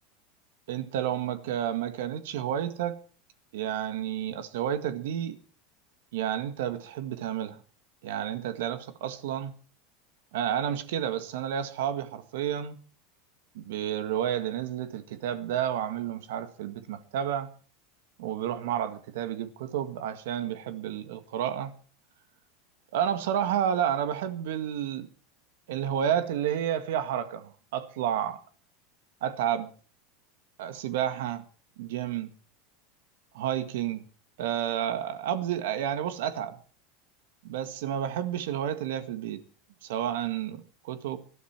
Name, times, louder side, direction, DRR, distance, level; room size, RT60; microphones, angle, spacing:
voice 1, 0.7-3.0 3.5-5.4 6.1-7.6 8.0-9.5 10.3-12.8 13.6-17.5 18.2-21.7 22.9-25.1 25.7-28.4 29.2-29.7 30.6-31.4 31.8-32.3 33.3-34.1 34.4-36.6 37.4-39.4 39.8-41.2, right 10 dB, 75° right, 1.8 m, -30 dB
19.5 x 12.5 x 4.6 m
supercardioid pair, 160°, 0 cm